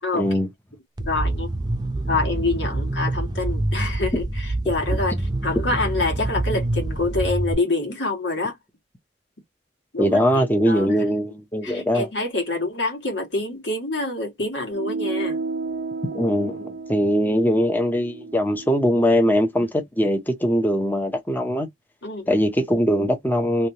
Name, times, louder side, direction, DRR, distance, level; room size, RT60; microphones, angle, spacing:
voice 1, 0.1-0.5 10.0-12.1 16.1-21.7 22.3-23.7, equal, 10° left, 0.7 m, -21 dB
sound 1, 1.0-7.5, right 2 dB, 25° right, 0.6 m, -26 dB
voice 2, 1.1-1.5 2.0-5.2 5.4-8.6 9.9-10.9 11.6-15.4 22.0-22.3, left 2 dB, 90° left, 1.7 m, -26 dB
sound 2, 14.7-19.5, right 3 dB, 85° right, 0.8 m, -32 dB
3.3 x 2.7 x 2.8 m
head